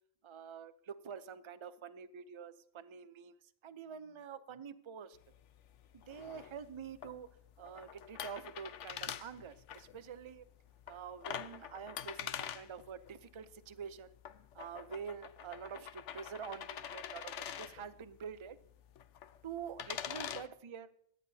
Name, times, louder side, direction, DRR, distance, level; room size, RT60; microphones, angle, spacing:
voice 1, 0.2-3.4 3.6-5.2 5.9-7.3 7.6-10.4 10.9-14.1 14.5-18.6 19.4-20.9, right 7 dB, 35° right, 13 dB, 0.5 m, -47 dB
sound 1, 5.1-20.5, left 9 dB, 85° left, 1.0 m, -46 dB
23.0 x 10.5 x 2.8 m, 0.72 s
omnidirectional pair, 1.2 m